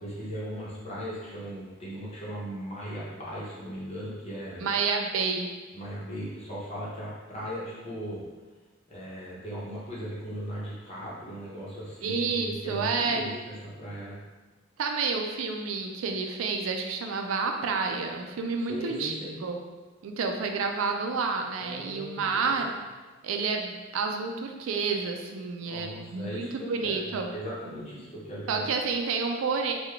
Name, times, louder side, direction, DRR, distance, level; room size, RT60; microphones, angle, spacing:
voice 1, 0.0-4.7 5.7-8.2 8.9-13.4 13.8-14.2 18.7-19.4 21.6-22.5 25.6-26.5 26.8-28.7, equal, 35° left, -7 dB, 0.8 m, -38 dB
voice 2, 4.6-5.5 12.0-13.2 14.8-19.1 19.4-19.6 20.0-22.7 23.2-27.3 28.5-29.7, right 4 dB, 90° right, 3 dB, 0.4 m, -29 dB
3.7 x 2.2 x 3.3 m, 1.3 s
head